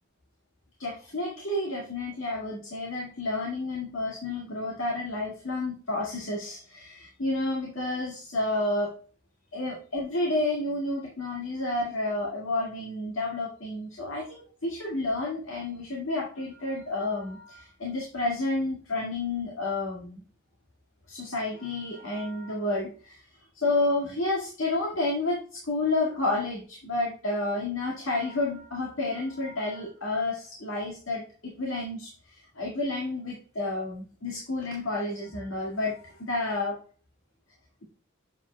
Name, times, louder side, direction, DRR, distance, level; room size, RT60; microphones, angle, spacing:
voice 1, 0.8-8.9 9.5-20.2 21.1-23.3 23.5-36.8, left 2 dB, 75° left, -3 dB, 2.0 m, -30 dB
7.9 x 7.3 x 2.3 m, 0.40 s
head